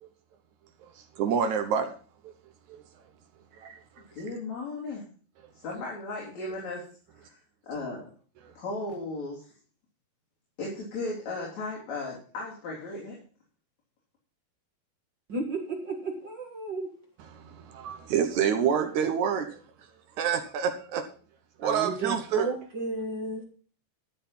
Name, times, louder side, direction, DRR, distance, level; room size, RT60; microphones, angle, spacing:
voice 1, 1.2-1.9 2.2-2.3 2.7-2.8 3.6-3.8 17.4-19.6 20.2-21.1 21.6-22.5, right 7 dB, 70° right, 7 dB, 1.9 m, -27 dB
voice 2, 4.2-5.0 5.6-6.8 7.1-7.4 7.6-8.1 8.6-9.5 10.6-13.2, left 2 dB, 50° left, -4 dB, 4.4 m, -36 dB
voice 3, 15.3-16.9 21.6-23.4, right 3 dB, 45° right, 1 dB, 1.6 m, -33 dB
13.0 x 7.2 x 5.6 m, 0.40 s
omnidirectional pair, 4.4 m